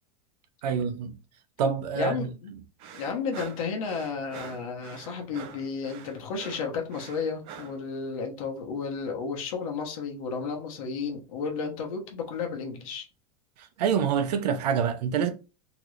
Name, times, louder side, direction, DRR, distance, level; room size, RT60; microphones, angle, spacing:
voice 1, 0.6-1.1 1.6-2.3 13.6-15.3, right 7 dB, 85° right, 0.7 m, -26 dB
voice 2, 2.0-2.5 2.9-13.1, left 5 dB, 60° left, 1.0 m, -32 dB
sound 1, 2.8-7.8, right 7 dB, 25° right, 0.3 m, -45 dB
3.0 x 2.5 x 3.1 m
supercardioid pair, 170°, 20 cm